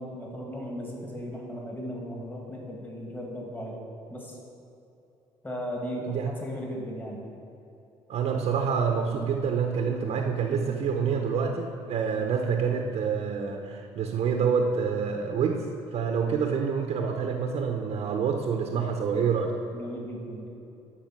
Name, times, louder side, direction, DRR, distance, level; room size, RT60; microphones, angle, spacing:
voice 1, 0.0-3.8 4.1-4.4 5.4-7.3 19.7-20.5, equal, 15° left, -2 dB, 2.3 m, -36 dB
voice 2, 8.1-19.6, right 6 dB, 60° right, 3 dB, 0.8 m, -27 dB
12.5 x 4.3 x 5.9 m, 2.8 s
supercardioid pair, 80°, 12 cm